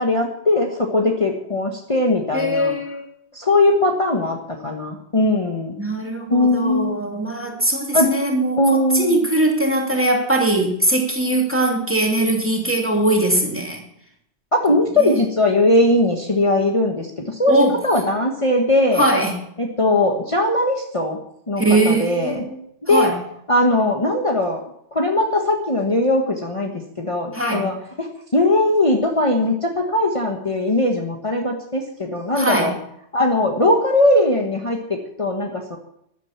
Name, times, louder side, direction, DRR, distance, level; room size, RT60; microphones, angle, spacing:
voice 1, 0.0-2.7 3.3-5.7 6.3-7.0 7.9-8.1 8.6-9.2 14.5-17.6 17.8-19.1 19.6-21.2 21.5-22.4 22.9-23.1 23.5-24.6 24.9-26.7 27.0-32.7 33.1-35.8, left 1 dB, 30° left, 1 dB, 1.4 m, -19 dB
voice 2, 2.3-3.1 5.8-13.8 15.0-15.1 17.5-17.8 19.0-19.3 21.6-22.6 22.9-23.2 27.3-27.7 32.3-32.7, right 1 dB, 10° right, 0 dB, 2.7 m, -20 dB
13.5 x 11.5 x 5.9 m, 0.76 s
omnidirectional pair, 1.2 m